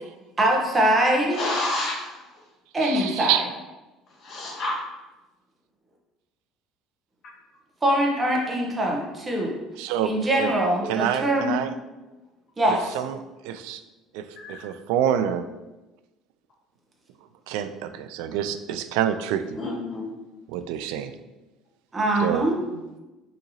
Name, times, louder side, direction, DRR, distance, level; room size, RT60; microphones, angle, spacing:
voice 1, 0.4-1.4 2.7-3.4 7.8-9.5 10.0-11.5 12.6-12.8 21.9-22.5, right 1 dB, 15° right, -1 dB, 0.8 m, -23 dB
voice 2, 1.3-2.2 4.2-4.8 14.3-14.6 19.6-20.0, left 2 dB, 45° left, -4 dB, 1.4 m, -29 dB
voice 3, 2.8-3.5 9.8-10.5 10.8-11.7 12.6-13.8 14.1-15.5 17.5-19.6 20.5-21.2 22.2-22.5, right 10 dB, 85° right, 11 dB, 0.3 m, -27 dB
6.4 x 2.9 x 2.7 m, 1.1 s
cardioid pair, 155°, 0 cm